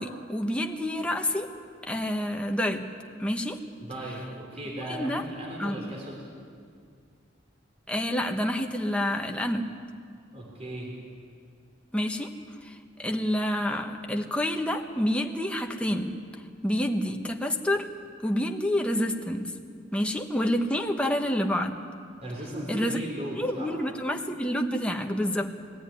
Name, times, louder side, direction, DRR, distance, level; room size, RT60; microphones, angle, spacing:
voice 1, 0.0-1.5 1.8-2.9 3.2-3.6 4.9-5.2 5.6-5.9 7.9-9.7 11.9-12.3 12.6-16.1 16.6-17.9 18.2-19.5 19.9-21.7 22.7-23.0 23.3-25.5, equal, 5° left, 2 dB, 1.1 m, -28 dB
voice 2, 3.8-6.3 10.3-11.0 22.2-23.8, right 1 dB, 35° right, -2 dB, 3.6 m, -37 dB
20.5 x 14.0 x 9.8 m, 2.2 s
head